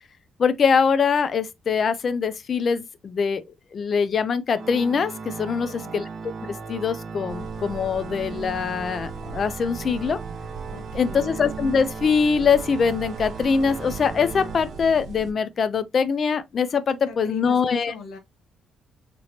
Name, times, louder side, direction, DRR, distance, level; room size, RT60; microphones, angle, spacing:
voice 1, 0.4-3.4 3.7-6.0 6.5-10.2 10.9-17.9, left 6 dB, 50° left, 0.5 m, -23 dB
Organ, 4.5-15.3, right 4 dB, 50° right, 0.7 m, -37 dB
voice 2, 5.5-6.0 10.7-11.3 17.0-18.2, left 5 dB, 85° left, 1.0 m, -42 dB
sound 1, 7.3-15.3, right 5 dB, 70° right, 1.2 m, -40 dB
4.2 x 3.0 x 2.8 m
cardioid pair, 90°, 0 cm